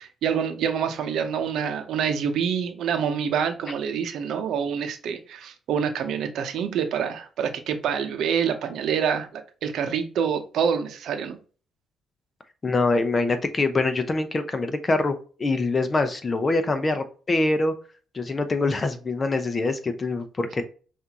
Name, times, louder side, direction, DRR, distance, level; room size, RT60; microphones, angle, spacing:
voice 1, 0.2-11.4, right 7 dB, 75° right, 0.8 m, -26 dB
voice 2, 12.6-17.7 18.1-20.6, left 2 dB, 30° left, 0.8 m, -24 dB
5.8 x 2.7 x 2.9 m
cardioid pair, 90°, 0 cm